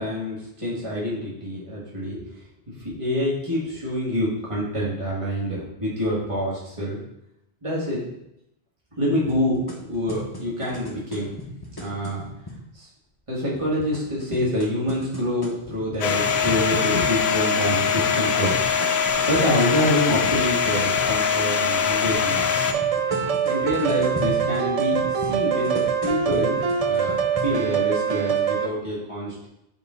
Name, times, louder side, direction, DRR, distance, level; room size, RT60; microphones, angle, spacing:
voice 1, 0.0-2.2 2.7-7.0 7.6-8.0 9.0-11.3 11.8-12.2 12.7-12.9 13.3-18.5 19.3-22.5 23.2-26.6 26.8-29.5, equal, 30° right, -6 dB, 1.9 m, -26 dB
sound 1, 9.3-12.6 13.5-16.9 17.7-21.2 22.1-27.5, left 1 dB, 25° left, 0.9 m, -36 dB
Domestic sounds home sounds, 16.0-22.7, left 6 dB, 80° left, 0.9 m, -22 dB
sound 2, 22.7-28.7, right 7 dB, 50° right, 0.4 m, -24 dB
6.6 x 4.5 x 3.7 m, 0.81 s
omnidirectional pair, 1.1 m